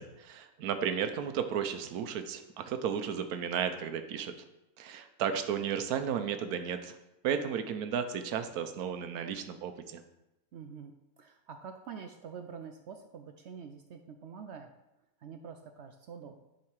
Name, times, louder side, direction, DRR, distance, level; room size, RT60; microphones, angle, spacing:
voice 1, 0.0-4.3 4.8-7.0 7.2-10.0, right 8 dB, 90° right, 8 dB, 1.2 m, -34 dB
voice 2, 10.5-14.7 15.2-16.4, right 6 dB, 65° right, 5 dB, 0.7 m, -46 dB
10.5 x 3.8 x 4.6 m, 0.94 s
omnidirectional pair, 1.6 m